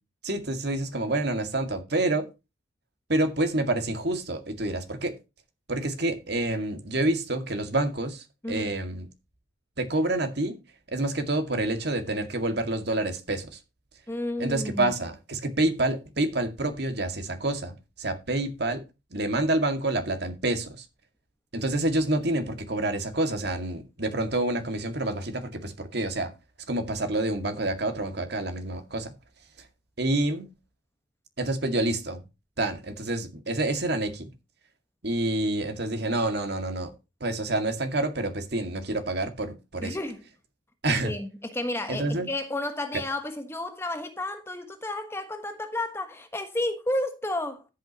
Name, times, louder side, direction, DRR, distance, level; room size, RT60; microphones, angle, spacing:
voice 1, 0.2-2.3 3.1-5.1 5.7-9.1 9.8-10.6 10.9-13.6 14.4-18.8 19.1-20.9 21.5-26.3 26.7-29.1 30.0-30.5 31.4-32.2 32.6-34.3 35.0-36.9 37.2-40.0 40.8-41.2 41.9-42.3, right 2 dB, 55° right, 2.1 m, -28 dB
voice 2, 14.1-14.9 39.8-40.2 41.0-47.6, left 1 dB, 15° left, 1.3 m, -32 dB
14.0 x 7.8 x 2.9 m
head